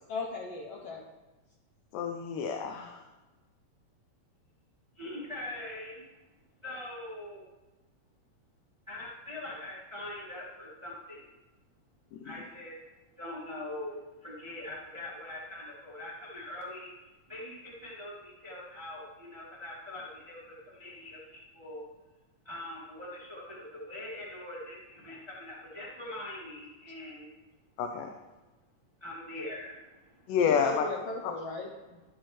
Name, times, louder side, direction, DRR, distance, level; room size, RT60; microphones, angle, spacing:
voice 1, 0.1-1.0 30.4-31.7, left 3 dB, 75° left, -1 dB, 1.5 m, -37 dB
voice 2, 1.9-3.0 27.8-28.1 30.3-30.9 31.2-31.3, left 7 dB, 90° left, 4 dB, 2.3 m, -29 dB
voice 3, 4.9-6.0 6.6-7.4 8.9-11.2 12.2-12.7 13.2-21.8 22.4-27.3 29.0-30.3, left 1 dB, 25° right, -5 dB, 0.5 m, -42 dB
12.5 x 6.2 x 3.2 m, 1.1 s
omnidirectional pair, 3.7 m